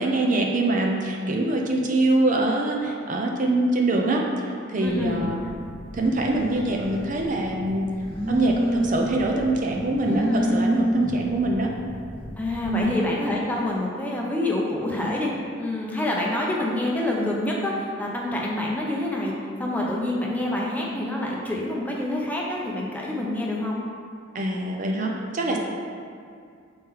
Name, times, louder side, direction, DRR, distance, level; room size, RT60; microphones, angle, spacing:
voice 1, 0.0-5.4 5.9-7.9 8.3-11.7 12.7-13.0 24.3-25.6, right 2 dB, 35° right, 0 dB, 0.5 m, -24 dB
Telephone, 4.8-12.9, equal, 25° left, 1.2 m, -30 dB
voice 2, 4.8-5.2 10.0-10.6 12.4-15.3 15.6-19.3 19.6-23.8, left 1 dB, 10° left, -3 dB, 0.6 m, -27 dB
7.0 x 4.3 x 3.7 m, 2.3 s
head